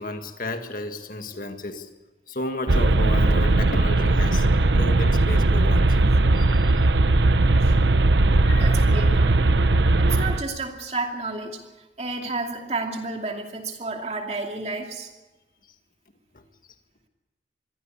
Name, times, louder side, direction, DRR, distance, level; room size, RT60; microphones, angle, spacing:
voice 1, 0.0-1.9 2.3-4.5 4.7-6.0 6.3-6.7 8.4-8.7 15.6-15.8 16.3-16.4, left 2 dB, 50° left, 6 dB, 1.8 m, -33 dB
sound 1, 2.7-10.4, right 2 dB, 80° right, 0.9 m, -19 dB
voice 2, 8.5-9.4 10.0-11.6 12.0-15.1, right 3 dB, 35° right, 3 dB, 2.6 m, -31 dB
23.0 x 15.5 x 8.6 m, 1.1 s
head